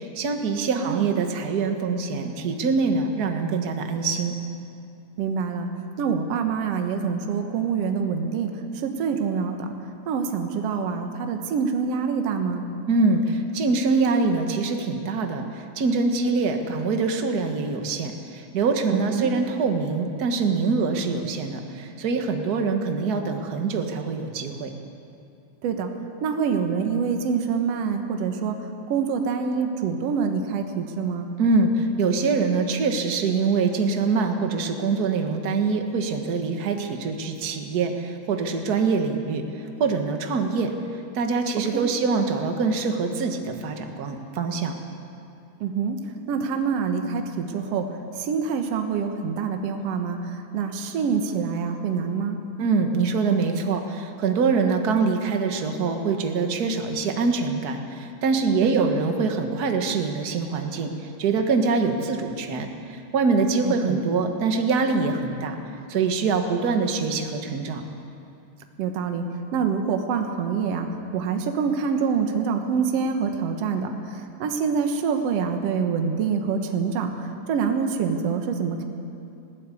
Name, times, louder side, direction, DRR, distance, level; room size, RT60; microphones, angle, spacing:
voice 1, 0.0-4.3 12.9-15.5 15.7-24.7 31.4-39.4 39.8-40.7 41.1-44.7 52.6-60.9 61.2-62.7 63.1-65.6 65.9-67.8, right 4 dB, 45° right, 4 dB, 1.4 m, -24 dB
voice 2, 0.7-1.1 5.2-5.7 6.0-9.7 10.1-12.7 18.9-19.3 25.6-25.9 26.2-28.6 28.9-31.3 41.7-41.9 45.6-46.0 46.3-47.9 48.1-52.4 58.6-58.9 63.6-64.0 68.8-69.2 69.5-78.8, right 6 dB, 60° right, 5 dB, 2.2 m, -26 dB
20.0 x 16.0 x 8.4 m, 2.6 s
omnidirectional pair, 3.5 m